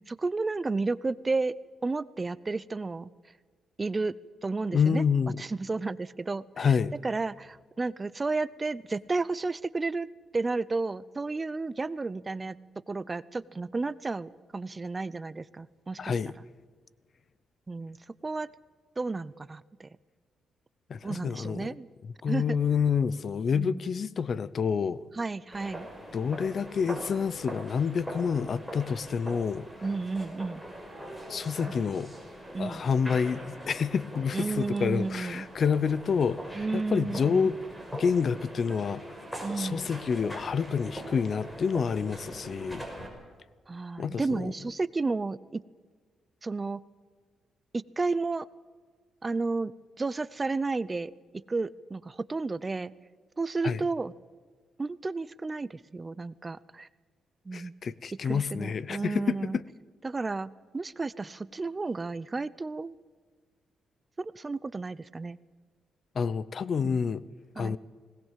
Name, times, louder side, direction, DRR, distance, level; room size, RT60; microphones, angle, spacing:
voice 1, 0.1-1.5 1.8-3.1 3.8-4.1 4.4-5.0 5.4-6.7 7.0-10.1 10.3-12.6 12.9-16.1 17.7-18.0 18.2-18.5 19.0-19.9 21.0-21.9 22.3-22.6 23.5-23.8 25.2-25.9 29.8-30.6 31.7-31.8 32.5-32.8 34.3-35.5 36.5-37.5 39.4-39.8 43.7-45.6 46.4-46.8 47.7-48.5 49.2-49.7 50.0-52.9 53.4-54.1 54.8-56.9 57.5-57.7 58.2-59.6 60.0-62.9 64.2-65.4 66.8-67.0 67.6-67.8, right 3 dB, 25° right, 0.6 m, -32 dB
voice 2, 4.7-5.4 6.6-6.9 16.0-16.3 20.9-21.7 22.0-25.0 26.1-29.7 31.3-32.1 32.6-37.6 37.9-39.2 39.5-42.9 44.0-44.5 53.6-53.8 57.5-59.6 66.1-67.2 67.6-67.8, left 6 dB, 50° left, 0.7 m, -28 dB
sound 1, 25.5-43.1, equal, 5° left, 5.8 m, -42 dB
20.5 x 19.0 x 7.5 m
cardioid pair, 90°, 0 cm